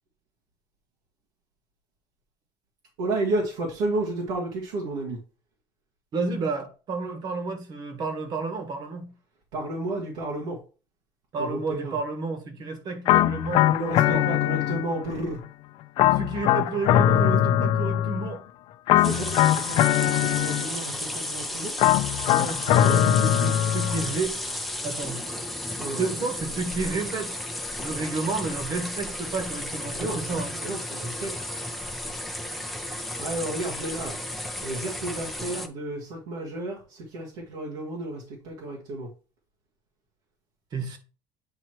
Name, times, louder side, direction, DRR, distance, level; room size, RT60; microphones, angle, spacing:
voice 1, 3.0-5.2 9.5-10.6 11.4-12.0 13.6-15.4 18.9-21.7 25.8-26.1 29.9-30.3 30.6-31.4 33.2-34.2 34.6-39.1, right 2 dB, 80° right, 1.8 m, -32 dB
voice 2, 6.1-9.1 11.3-13.7 14.1-14.2 16.1-18.4 22.3-24.4 24.8-25.3 25.9-27.5 27.8-30.5 40.7-41.0, right 4 dB, 45° right, 1.7 m, -31 dB
sound 1, 13.1-15.1 16.0-18.4 18.9-21.0 21.8-24.2, left 12 dB, 60° left, 0.5 m, -22 dB
sound 2, 19.0-35.7, left 1 dB, ahead, 0.8 m, -33 dB
8.6 x 3.0 x 4.5 m
cardioid pair, 125°, 10 cm